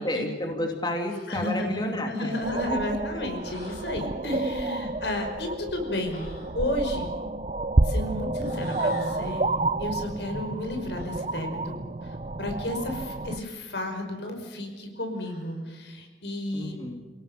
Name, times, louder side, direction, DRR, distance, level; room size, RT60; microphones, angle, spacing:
voice 1, 0.0-2.4 2.7-2.8 16.5-17.0, left 1 dB, 25° left, 2 dB, 2.5 m, -30 dB
sound 1, 1.0-1.4 3.4-4.0 6.0-6.6 8.3-9.3 10.9-11.2 13.2-13.7 15.1-15.6, left 2 dB, 55° left, 7.0 m, -43 dB
voice 2, 1.3-6.2 6.5-7.1 7.8-9.5 9.8-16.7, left 1 dB, 80° left, 4 dB, 5.4 m, -32 dB
sound 2, 2.4-13.4, right 2 dB, 35° right, 0.7 m, -30 dB
30.0 x 18.0 x 6.8 m, 1.4 s
head